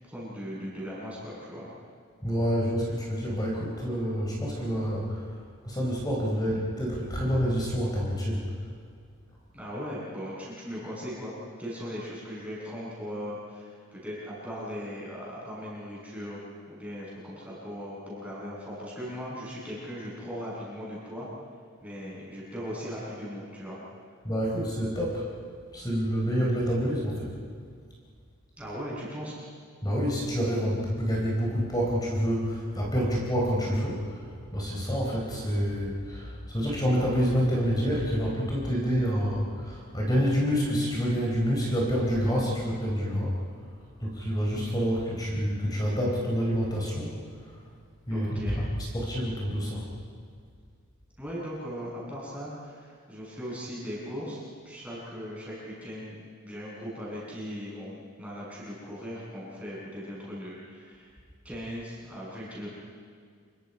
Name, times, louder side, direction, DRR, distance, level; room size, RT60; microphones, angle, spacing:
voice 1, 0.0-1.7 9.5-16.4 16.7-21.3 21.8-23.8 28.6-29.3 48.1-48.6 51.2-54.4 54.6-61.1 61.4-62.7, equal, 5° right, -7 dB, 7.9 m, -38 dB
voice 2, 2.2-5.2 5.6-8.5 24.2-25.3 25.7-27.4 29.8-34.0 34.5-43.3 44.0-47.1 48.1-48.6 48.9-49.8, equal, 15° left, -3 dB, 4.1 m, -27 dB
28.0 x 23.0 x 5.6 m, 2.1 s
head